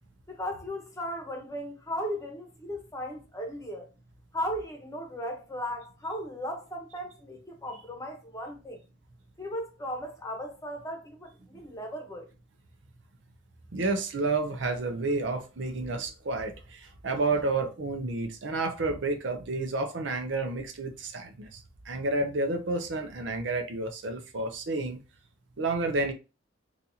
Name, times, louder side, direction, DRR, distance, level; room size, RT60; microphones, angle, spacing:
voice 1, 0.3-3.9 4.3-8.8 9.4-12.3, equal, 15° left, 1.0 m, -36 dB
voice 2, 13.7-21.6 21.9-25.0 25.6-26.1, right 3 dB, 70° right, 0.6 m, -30 dB
4.0 x 2.5 x 2.8 m
head